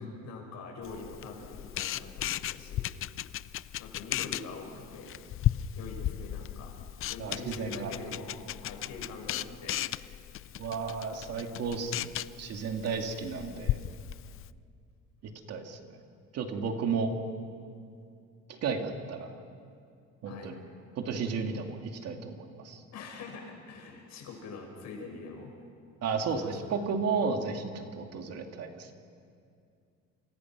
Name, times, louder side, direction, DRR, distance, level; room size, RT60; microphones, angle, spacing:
voice 1, 0.0-2.9 3.8-5.1 5.7-6.7 7.1-9.8 20.2-20.5 22.9-25.5 26.3-26.7, left 4 dB, 60° left, 2 dB, 6.6 m, -44 dB
Camera, 0.8-14.5, left 13 dB, 45° left, 0.5 m, -36 dB
voice 2, 7.2-7.9 10.6-12.1 12.4-13.8 15.5-15.8 16.3-17.1 18.6-19.3 20.2-20.5 21.0-22.8 26.0-28.9, right 5 dB, 55° right, 4 dB, 2.5 m, -33 dB
30.0 x 26.5 x 6.1 m, 2.4 s
cardioid pair, 135°, 30 cm